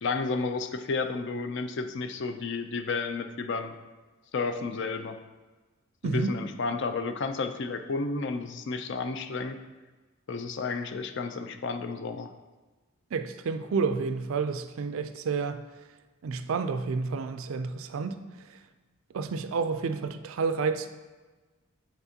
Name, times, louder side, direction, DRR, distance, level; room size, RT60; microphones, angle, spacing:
voice 1, 0.0-3.7 4.3-5.2 6.0-9.6 10.3-12.3, left 4 dB, 55° left, 8 dB, 0.4 m, -32 dB
voice 2, 6.0-6.3 13.1-15.6 16.2-18.2 18.5-18.6 19.1-20.9, right 4 dB, 65° right, 9 dB, 0.4 m, -30 dB
8.0 x 4.3 x 2.8 m, 1.2 s
head